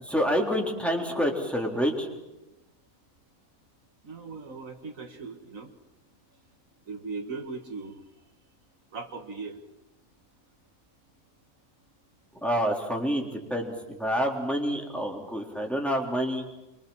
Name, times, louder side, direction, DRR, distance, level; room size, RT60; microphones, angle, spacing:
voice 1, 0.1-2.1 12.4-16.4, equal, ahead, 0 dB, 3.6 m, -28 dB
voice 2, 4.0-5.7 6.9-8.0 8.9-9.6, right 4 dB, 65° right, 5 dB, 2.0 m, -38 dB
25.5 x 24.0 x 7.2 m, 1.0 s
omnidirectional pair, 1.5 m